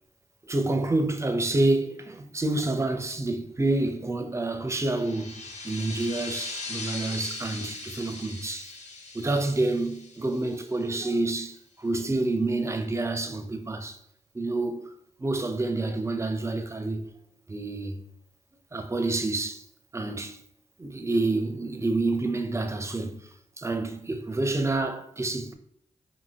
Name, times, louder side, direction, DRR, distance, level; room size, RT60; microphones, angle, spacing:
voice 1, 0.4-8.7 9.1-14.0 14.3-14.9 15.2-17.1 17.5-18.0 18.7-19.6 19.9-20.4 20.8-23.2 23.6-25.5, right 2 dB, 20° right, 0.4 m, -28 dB
sound 1, 4.8-11.1, left 3 dB, 60° left, 0.5 m, -40 dB
2.7 x 2.6 x 2.7 m
cardioid pair, 45°, 14 cm